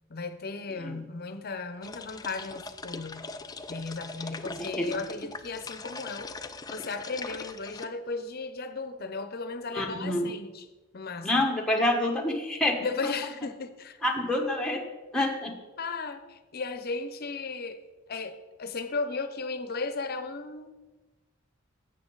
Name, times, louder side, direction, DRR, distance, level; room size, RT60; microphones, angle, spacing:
voice 1, 0.1-3.3 3.7-6.3 6.7-10.7 10.9-11.5 12.8-14.0 15.8-17.8 18.1-20.7, left 4 dB, 50° left, 0.8 m, -35 dB
sound 1, 1.8-7.9, left 3 dB, 20° left, 0.4 m, -41 dB
voice 2, 9.7-10.3 11.2-13.1 14.0-14.9 15.1-15.6, left 1 dB, 5° left, 1.3 m, -27 dB
11.5 x 8.2 x 4.0 m
head